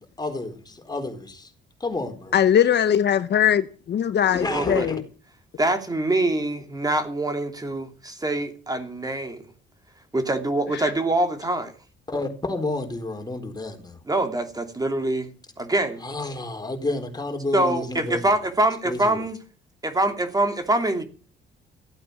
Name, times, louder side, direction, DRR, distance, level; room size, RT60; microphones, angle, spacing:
voice 1, 0.2-1.5 1.8-2.3 4.3-5.0 12.1-14.0 16.0-18.4 18.8-19.2, left 2 dB, 20° left, 4.3 m, -30 dB
voice 2, 2.3-5.0 10.7-10.9, left 9 dB, 60° left, 1.0 m, -21 dB
voice 3, 4.4-4.9 5.6-9.4 10.1-11.7 14.1-15.3 15.6-16.0 17.5-19.4 19.8-21.0, right 2 dB, 20° right, 2.9 m, -24 dB
15.5 x 8.8 x 7.1 m
cardioid pair, 90°, 20 cm